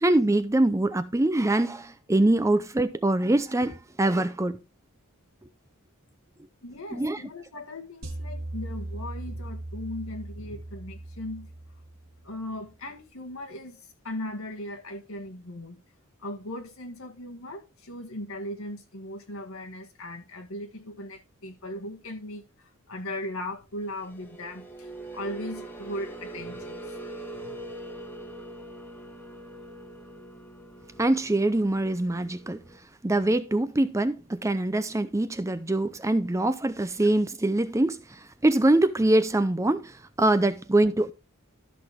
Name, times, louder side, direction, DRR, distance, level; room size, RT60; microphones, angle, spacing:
voice 1, 0.0-4.6 6.9-7.2 31.0-32.6 33.0-41.1, right 1 dB, 15° right, 0.5 m, -24 dB
voice 2, 6.6-11.5 12.2-15.8 16.2-27.0 27.3-27.6, left 1 dB, 70° left, 1.8 m, -38 dB
sound 1, 8.0-12.3, right 1 dB, 70° right, 2.3 m, -38 dB
sound 2, 23.7-32.8, right 2 dB, 10° left, 1.3 m, -42 dB
13.0 x 6.0 x 3.5 m
head